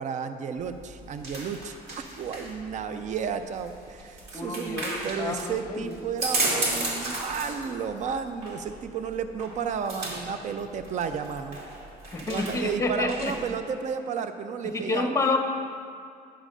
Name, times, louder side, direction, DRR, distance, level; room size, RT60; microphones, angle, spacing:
voice 1, 0.0-11.6 12.2-15.1, right 6 dB, 45° right, 9 dB, 0.5 m, -32 dB
sound 1, 0.6-13.5, right 2 dB, 75° right, 2.3 m, -35 dB
voice 2, 4.3-5.9 12.1-13.3 14.7-15.4, left 3 dB, 20° left, 4 dB, 0.9 m, -29 dB
10.0 x 4.9 x 6.6 m, 2.4 s
cardioid pair, 110°, 17 cm